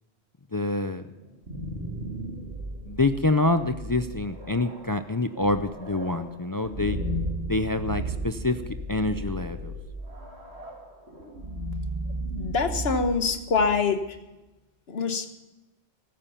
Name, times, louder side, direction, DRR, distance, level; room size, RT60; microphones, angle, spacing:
voice 1, 0.5-1.0 2.9-7.0 7.5-8.6 8.9-9.7, left 2 dB, 30° left, 9 dB, 0.4 m, -26 dB
sound 1, 1.2-14.0, right 1 dB, 75° right, 2.4 m, -35 dB
voice 2, 12.3-14.0 14.9-15.3, left 5 dB, 65° left, 8 dB, 1.5 m, -25 dB
14.5 x 14.5 x 5.7 m, 1.0 s
omnidirectional pair, 1.1 m